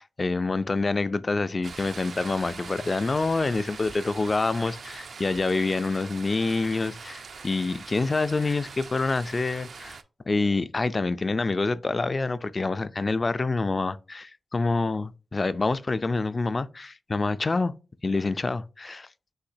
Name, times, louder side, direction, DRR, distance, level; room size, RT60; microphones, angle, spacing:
voice 1, 0.0-10.0 10.3-17.7 18.0-19.1, left 3 dB, 35° left, 0.3 m, -27 dB
sound 1, 1.6-10.0, right 5 dB, 70° right, 0.4 m, -42 dB
5.6 x 3.3 x 2.6 m
wide cardioid pair, 95°, 0 cm